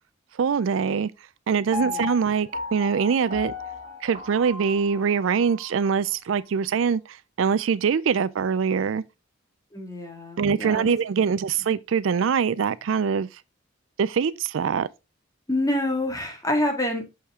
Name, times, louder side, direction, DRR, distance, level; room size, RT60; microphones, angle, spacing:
voice 1, 0.4-1.1 1.5-3.5 4.0-9.0 10.4-13.3 14.0-14.9, right 6 dB, 70° right, 0.4 m, -23 dB
Piano, 1.7-5.8 6.3-6.4, left 3 dB, 40° right, 2.4 m, -35 dB
voice 2, 9.7-10.9 15.5-17.0, left 1 dB, 20° left, 1.8 m, -27 dB
6.5 x 5.5 x 3.5 m
head